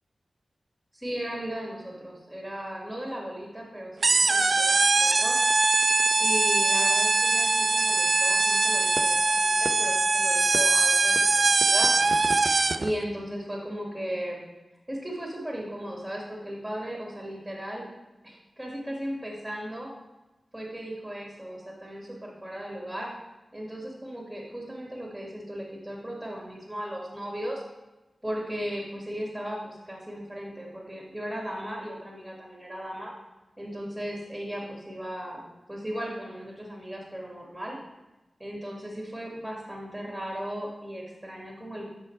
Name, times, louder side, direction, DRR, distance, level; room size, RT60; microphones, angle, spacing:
voice 1, 0.9-5.4 6.2-11.9 12.8-14.4 14.9-17.8 18.2-19.9 20.5-23.1 23.5-27.6 28.2-33.1 33.6-37.8 38.4-41.9, equal, 5° right, -3 dB, 2.0 m, -36 dB
sound 1, 4.0-12.9, right 3 dB, 60° right, 0.4 m, -22 dB
11.0 x 5.3 x 3.2 m, 1.0 s
cardioid pair, 55°, 0 cm